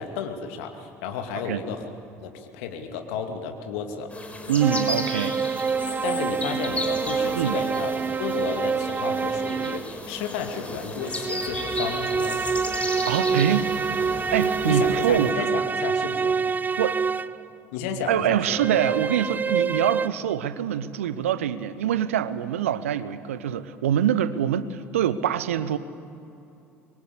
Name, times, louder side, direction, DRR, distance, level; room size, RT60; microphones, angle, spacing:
voice 1, 0.0-1.9 2.2-4.1 6.0-12.4 14.6-16.4 17.7-18.6, left 6 dB, 65° left, 5 dB, 2.4 m, -32 dB
sound 1, 4.1-15.3, left 2 dB, 15° left, 4.7 m, -35 dB
voice 2, 4.5-5.4 7.4-7.6 13.1-13.7 14.3-15.3 16.8-17.0 18.1-25.8, right 10 dB, 75° right, 15 dB, 0.9 m, -24 dB
sound 2, 4.6-10.0 11.0-17.5 18.5-20.1, right 5 dB, 25° right, 0.6 m, -27 dB
24.5 x 22.5 x 8.4 m, 2.7 s
figure-of-eight pair, 60°, 7 cm